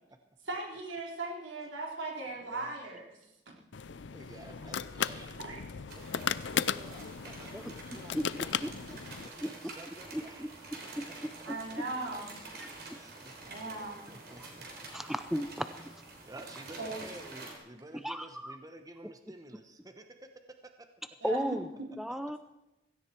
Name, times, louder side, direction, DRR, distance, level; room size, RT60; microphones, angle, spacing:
voice 1, 0.5-3.6 5.4-5.6 11.4-12.4 13.5-14.1 14.4-14.5 16.8-16.9 21.2-21.9, right 2 dB, 85° right, -1 dB, 3.9 m, -39 dB
voice 2, 2.4-2.7 4.1-11.4 12.9-14.7 16.2-20.9, right 1 dB, 20° right, 7 dB, 1.0 m, -52 dB
sound 1, 3.7-9.3, left 7 dB, 75° left, 0.5 m, -36 dB
sound 2, 5.9-17.5, right 2 dB, 55° right, 3.5 m, -48 dB
voice 3, 8.6-9.0 9.4-9.5 10.1-10.5 11.0-11.1 11.5-11.6 12.6-12.7 14.9-15.7 18.0-18.6 21.2-21.7 22.0-22.4, equal, ahead, 10 dB, 0.5 m, -34 dB
16.5 x 16.0 x 4.5 m, 0.92 s
head